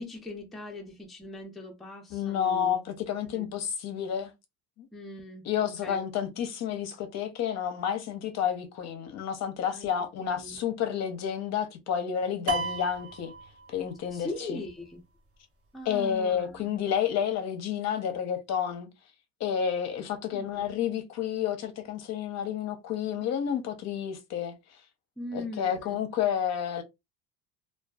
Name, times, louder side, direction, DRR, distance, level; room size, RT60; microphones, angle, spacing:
voice 1, 0.0-2.7 3.3-3.5 4.9-6.1 9.7-9.9 10.2-10.6 14.1-15.0 15.7-16.8 20.3-20.8 25.2-26.0, left 2 dB, ahead, 0.5 m, -40 dB
voice 2, 2.1-4.3 4.8-4.9 5.5-13.3 13.7-14.6 15.9-18.9 19.4-24.5 25.3-26.8, left 8 dB, 50° left, 0.6 m, -30 dB
sound 1, 12.5-14.2, right 4 dB, 40° right, 0.7 m, -35 dB
2.5 x 2.3 x 2.3 m
cardioid pair, 120°, 35 cm